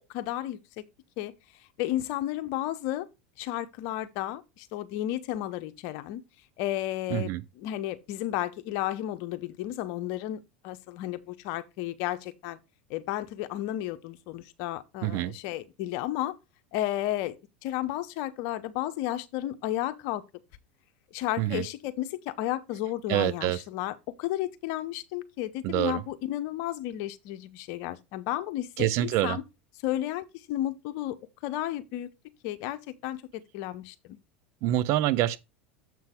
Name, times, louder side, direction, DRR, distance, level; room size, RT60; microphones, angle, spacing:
voice 1, 0.1-0.8 1.2-1.3 1.8-3.1 3.4-6.2 6.6-7.3 7.6-12.6 12.9-16.4 16.7-20.2 21.1-29.4 29.8-32.1 32.4-34.2, left 14 dB, 55° left, 0.8 m, -33 dB
voice 2, 7.1-7.4 15.0-15.3 21.4-21.6 23.1-23.6 25.6-26.0 28.8-29.4 34.6-35.4, right 14 dB, 55° right, 0.7 m, -26 dB
7.5 x 5.6 x 3.7 m
hypercardioid pair, 85°, 6 cm